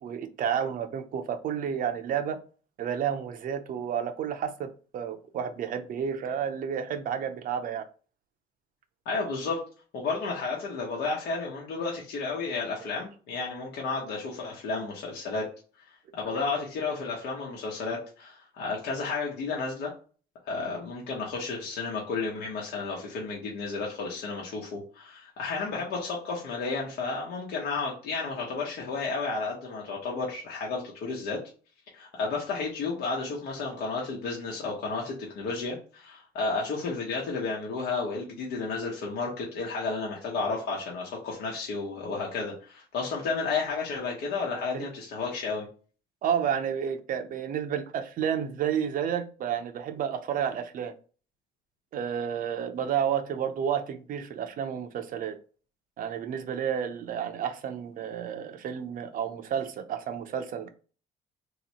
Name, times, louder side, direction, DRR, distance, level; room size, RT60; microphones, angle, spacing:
voice 1, 0.0-2.4 2.8-7.9 44.7-44.9 46.2-50.9 51.9-55.4 56.0-60.7, right 8 dB, 55° right, 0.6 m, -31 dB
voice 2, 9.0-9.6 9.9-15.5 16.1-19.9 20.4-31.4 31.9-45.7, left 4 dB, 75° left, 1.1 m, -32 dB
3.2 x 2.9 x 4.1 m
cardioid pair, 110°, 17 cm